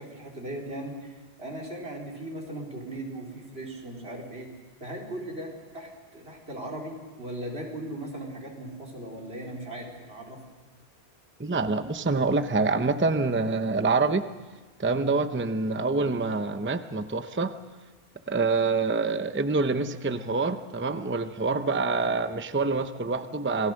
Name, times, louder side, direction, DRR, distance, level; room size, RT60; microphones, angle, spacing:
voice 1, 0.0-4.5 4.8-10.4, right 1 dB, 80° right, 1 dB, 4.3 m, -38 dB
voice 2, 11.4-14.3 14.8-17.5 18.3-23.7, right 3 dB, 15° right, 9 dB, 0.7 m, -26 dB
27.0 x 18.5 x 6.4 m, 1.3 s
omnidirectional pair, 1.0 m